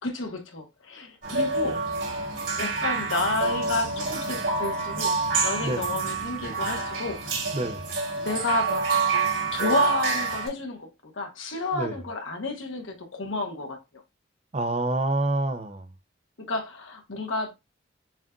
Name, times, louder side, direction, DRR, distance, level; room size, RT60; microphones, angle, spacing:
voice 1, 0.0-1.8 2.6-7.2 8.2-8.8 9.5-10.9 11.1-13.8 16.5-17.5, left 2 dB, 85° left, 1.2 m, -30 dB
sound 1, 1.2-10.5, right 4 dB, 75° right, 3.0 m, -27 dB
voice 2, 7.5-8.0 11.7-12.0 14.5-15.9, right 2 dB, 30° right, 0.5 m, -27 dB
7.2 x 2.6 x 2.3 m
head